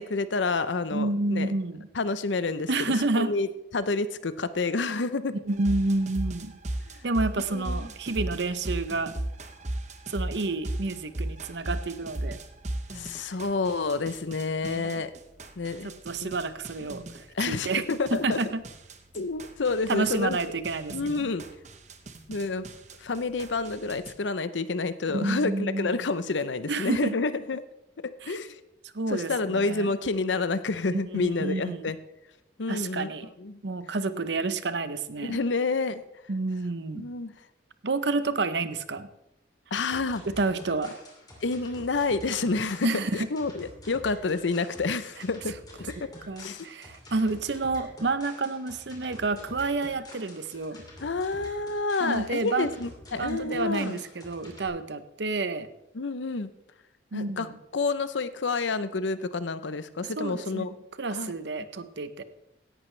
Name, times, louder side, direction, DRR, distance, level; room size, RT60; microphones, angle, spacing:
voice 1, 0.0-1.5 1.9-2.7 3.2-3.5 3.7-5.4 7.5-7.8 12.9-15.1 15.6-15.9 16.2-16.3 16.8-16.9 17.3-18.4 19.1-20.4 20.9-21.4 22.3-22.6 23.0-27.6 28.0-28.6 29.1-32.0 32.6-33.1 33.4-33.6 35.2-36.0 36.9-37.3 39.7-40.2 41.4-42.9 43.1-46.1 46.4-46.7 51.0-54.0 55.9-56.5 57.1-57.5 57.7-60.7 61.1-61.3, left 3 dB, 90° left, 13 dB, 0.7 m, -29 dB
voice 2, 0.9-1.9 2.7-3.3 5.5-6.5 7.0-9.1 10.1-12.4 14.6-15.0 15.8-17.8 18.1-18.6 19.9-21.3 25.1-26.0 26.7-27.1 28.2-28.4 28.9-29.9 31.1-31.9 32.7-33.3 33.6-35.4 36.3-37.0 37.8-39.1 40.4-40.9 42.8-43.3 46.0-50.8 52.0-52.7 53.1-55.7 57.1-57.6 60.2-60.7 61.0-62.2, right 3 dB, 70° right, 12 dB, 0.8 m, -29 dB
sound 1, 5.5-24.1, right 1 dB, 40° right, 0.9 m, -37 dB
sound 2, 39.9-54.7, left 1 dB, 20° left, 2.8 m, -48 dB
16.5 x 11.0 x 3.3 m, 0.89 s
head